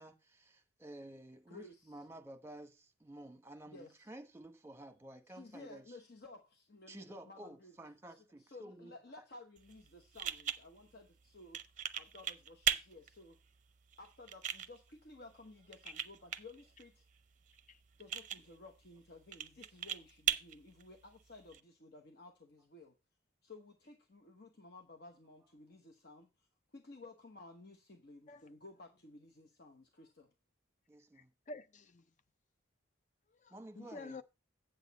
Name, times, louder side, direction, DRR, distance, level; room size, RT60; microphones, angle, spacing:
voice 1, 0.0-5.8 6.9-8.9 30.9-31.3 33.5-34.2, right 1 dB, 15° right, 1.1 m, -52 dB
voice 2, 1.5-2.0 3.7-4.1 5.3-7.8 8.1-11.6 12.0-13.4 14.0-17.0 18.0-23.0 23.4-30.3, left 2 dB, 55° left, 1.1 m, -55 dB
sound 1, 9.6-21.6, right 9 dB, 40° right, 0.6 m, -41 dB
voice 3, 31.5-32.0 33.4-34.2, left 3 dB, 40° left, 0.5 m, -48 dB
8.1 x 8.0 x 4.1 m
head